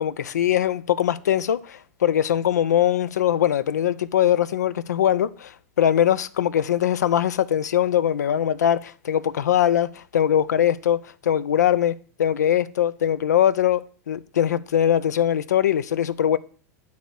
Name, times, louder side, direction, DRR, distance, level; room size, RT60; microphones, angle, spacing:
voice 1, 0.0-16.4, left 10 dB, 80° left, 0.4 m, -21 dB
9.1 x 3.4 x 6.3 m
hypercardioid pair, 95°, 9 cm